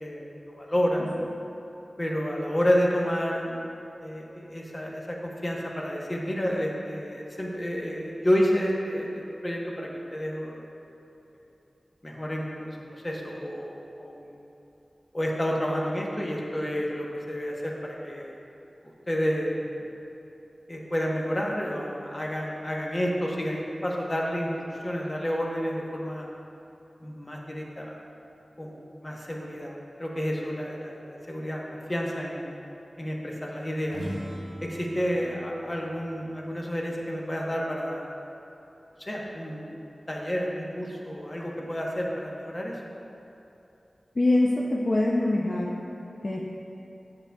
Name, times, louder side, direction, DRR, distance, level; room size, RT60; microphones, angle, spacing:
voice 1, 0.0-1.1 2.0-10.6 12.0-14.4 15.1-18.3 19.1-19.9 20.7-24.5 24.8-26.3 27.0-28.0 28.6-29.7 30.0-32.5 33.0-34.0 34.6-38.1 39.0-39.7 40.1-42.8, equal, 30° left, -2 dB, 0.9 m, -30 dB
sound 1, 33.8-37.6, equal, 80° right, 0.9 m, -41 dB
voice 2, 44.1-45.8 46.2-46.5, left 2 dB, 45° left, -3 dB, 0.5 m, -24 dB
8.9 x 6.8 x 2.3 m, 2.9 s
wide cardioid pair, 70°, 0 cm